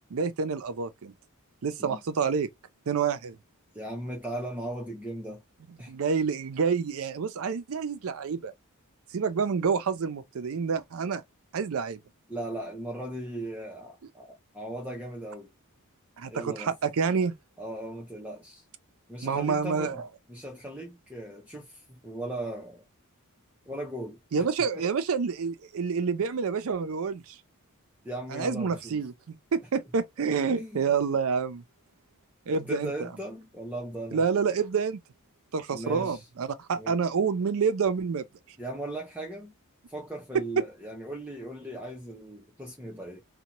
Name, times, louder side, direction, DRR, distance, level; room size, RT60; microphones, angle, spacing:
voice 1, 0.1-1.1 1.6-2.5 2.9-3.4 5.9-8.5 9.1-11.2 11.5-12.0 16.2-17.3 19.2-20.0 24.3-27.4 28.3-29.1 29.5-31.6 32.5-33.1 34.1-35.0 35.5-38.2 40.3-40.7, right 5 dB, 65° right, 0.5 m, -28 dB
voice 2, 3.7-5.4 5.8-5.9 12.3-15.5 16.3-16.8 17.6-18.6 19.1-20.0 20.3-22.8 23.7-24.2 28.0-29.0 30.5-30.8 32.5-34.2 35.7-36.2 36.8-37.0 38.6-39.5 39.9-43.2, right 1 dB, 5° right, 0.6 m, -38 dB
2.7 x 2.2 x 2.9 m
head